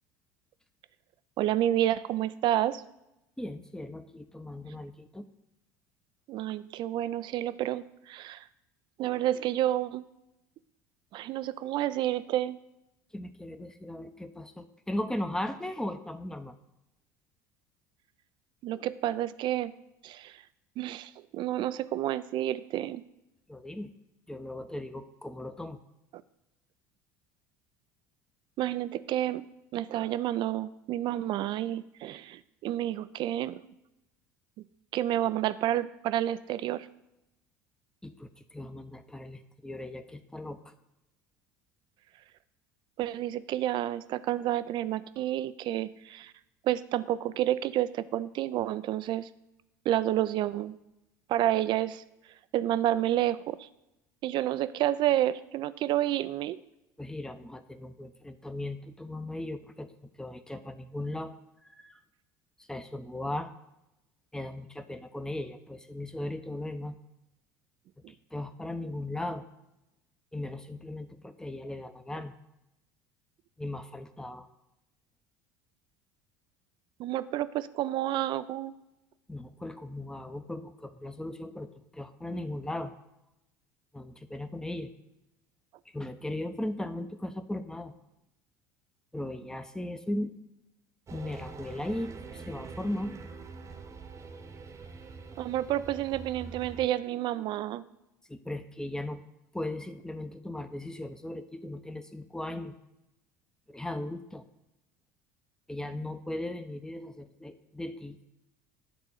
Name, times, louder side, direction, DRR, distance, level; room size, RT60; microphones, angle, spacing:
voice 1, 1.4-2.8 6.3-8.4 9.0-10.0 11.1-12.6 18.6-19.7 20.0-20.4 20.8-23.0 28.6-29.5 29.7-33.6 34.9-36.9 43.0-46.3 46.6-49.3 49.9-50.8 51.3-52.0 52.5-53.7 54.2-56.6 77.0-78.7 95.4-97.8, right 13 dB, 50° right, 15 dB, 0.5 m, -29 dB
voice 2, 3.4-5.3 13.1-16.5 23.5-23.9 24.3-25.8 38.0-40.7 57.0-59.9 60.2-61.3 61.6-62.0 62.7-63.5 64.3-67.0 68.1-69.4 70.3-72.3 73.6-74.5 79.3-81.7 81.9-82.9 83.9-84.9 85.9-87.9 89.1-90.3 91.1-93.1 98.3-99.2 99.5-102.8 103.7-104.4 105.7-108.2, left 1 dB, 5° left, 9 dB, 0.8 m, -37 dB
sound 1, 91.1-96.9, right 4 dB, 30° right, 1.0 m, -45 dB
10.5 x 3.7 x 7.2 m, 0.91 s
hypercardioid pair, 75°, 10 cm